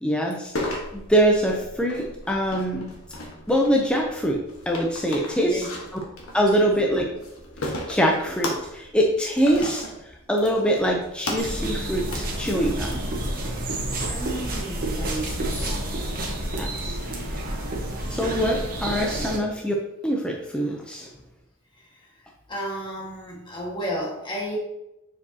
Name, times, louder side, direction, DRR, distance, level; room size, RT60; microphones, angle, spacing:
voice 1, 0.0-2.9 3.5-4.4 4.7-5.7 6.3-7.1 7.6-9.8 10.3-13.0 16.6-17.0 18.1-19.7 20.0-21.1, equal, 5° left, 0 dB, 0.6 m, -24 dB
sound 1, 0.5-13.8, left 1 dB, 70° left, 1.3 m, -37 dB
voice 2, 5.4-5.8 6.5-7.0 14.1-15.8 22.5-24.6, right 1 dB, 20° left, -3 dB, 1.7 m, -33 dB
sound 2, 11.4-19.4, right 1 dB, 45° right, 1.2 m, -29 dB
7.0 x 4.8 x 2.8 m, 0.89 s
head